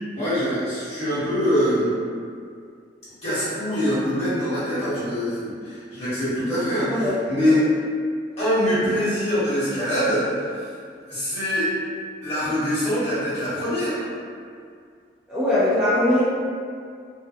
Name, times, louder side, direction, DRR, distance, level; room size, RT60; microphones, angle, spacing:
voice 1, 0.1-1.9 3.2-7.7 8.4-10.5 11.1-11.7 12.2-14.0, equal, 35° left, -13 dB, 1.2 m, -24 dB
voice 2, 15.3-16.2, left 1 dB, 5° right, -13 dB, 0.4 m, -20 dB
2.6 x 2.2 x 2.4 m, 2.2 s
head